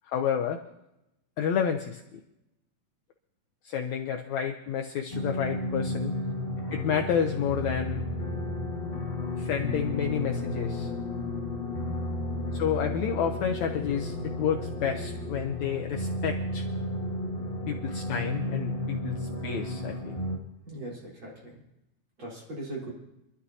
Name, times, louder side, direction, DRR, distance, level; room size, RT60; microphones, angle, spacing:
voice 1, 0.1-0.6 1.4-2.0 3.6-6.1 6.7-8.0 9.4-10.9 12.5-16.7 17.7-20.1, left 8 dB, 85° left, 4 dB, 1.6 m, -30 dB
sound 1, 5.1-20.4, left 1 dB, 30° left, 1.0 m, -33 dB
voice 2, 20.6-21.6 22.2-22.9, right 1 dB, 35° right, -4 dB, 4.4 m, -39 dB
25.5 x 12.5 x 2.8 m, 0.90 s
omnidirectional pair, 4.1 m